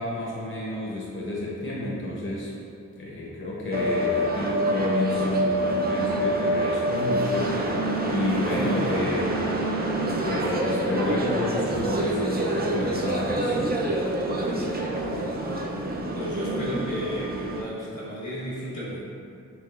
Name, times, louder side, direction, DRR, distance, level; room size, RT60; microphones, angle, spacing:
voice 1, 0.0-2.5 3.0-7.5 8.1-9.4 10.2-13.7, left 2 dB, 45° left, -5 dB, 0.7 m, -30 dB
sound 1, 3.7-17.6, right 1 dB, 30° right, 0.4 m, -26 dB
voice 2, 16.1-19.0, left 1 dB, 85° left, -8 dB, 1.1 m, -34 dB
4.7 x 3.0 x 2.3 m, 2.5 s
wide cardioid pair, 75°, 30 cm